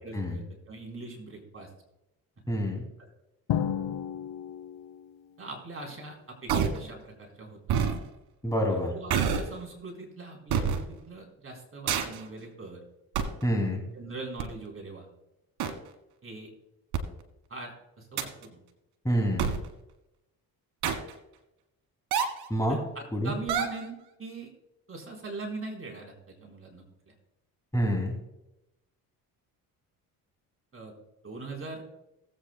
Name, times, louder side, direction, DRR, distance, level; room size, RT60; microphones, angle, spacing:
voice 1, 0.0-1.7 5.4-7.8 8.7-12.8 13.9-15.1 16.2-16.5 17.5-18.6 22.7-24.5 24.9-27.1 30.7-30.9 31.2-31.8, right 3 dB, 35° right, 1 dB, 4.0 m, -41 dB
voice 2, 2.5-2.8 8.4-8.9 13.4-13.8 19.0-19.5 22.5-22.8 23.1-23.3 27.7-28.1, equal, 10° left, 0 dB, 2.7 m, -27 dB
Drum, 3.5-5.2, left 9 dB, 75° left, 1.1 m, -32 dB
sound 1, 6.5-6.8 7.7-8.0 9.1-9.6 10.5-10.8 11.9-12.2 13.2-13.4 14.4-14.5 15.6-15.7 16.9-17.0 18.2-18.4 19.4-19.7 20.8-21.1 22.1-22.5 23.5-23.9, right 7 dB, 70° right, 1.6 m, -26 dB
18.5 x 8.4 x 2.3 m, 0.90 s
supercardioid pair, 80°, 39 cm